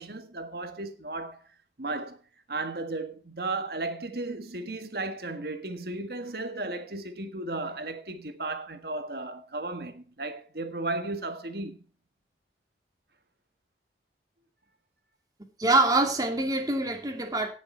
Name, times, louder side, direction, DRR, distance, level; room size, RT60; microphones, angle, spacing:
voice 1, 0.0-1.4 1.8-2.2 2.5-11.8, right 2 dB, 60° right, 1.6 m, -35 dB
voice 2, 15.6-17.5, right 2 dB, 20° right, 2.3 m, -24 dB
18.0 x 6.9 x 4.5 m
head